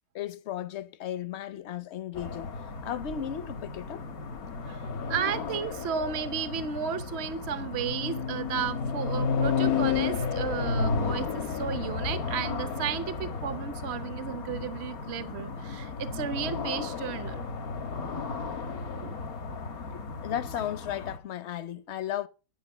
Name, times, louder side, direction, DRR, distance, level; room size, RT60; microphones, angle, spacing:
voice 1, 0.1-2.5 2.8-4.0 19.9-22.3, left 10 dB, 60° left, 0.9 m, -35 dB
sound 1, 2.1-21.2, left 5 dB, 80° left, 1.7 m, -33 dB
voice 2, 4.6-17.5 18.9-19.1 19.8-20.0, right 7 dB, 55° right, 1.0 m, -34 dB
11.0 x 6.0 x 7.0 m
omnidirectional pair, 1.5 m